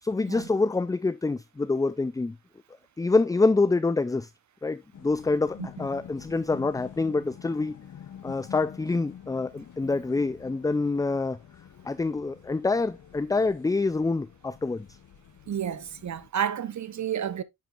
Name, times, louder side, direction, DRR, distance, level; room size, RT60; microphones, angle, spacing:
voice 1, 0.0-2.4 3.0-4.3 4.6-7.8 8.2-11.4 11.8-14.9, left 3 dB, 10° left, 0.3 m, -26 dB
sound 1, 4.9-16.3, left 9 dB, 60° left, 0.8 m, -47 dB
voice 2, 15.5-17.4, right 9 dB, 55° right, 0.9 m, -30 dB
10.5 x 4.7 x 2.4 m
cardioid pair, 80°, 35 cm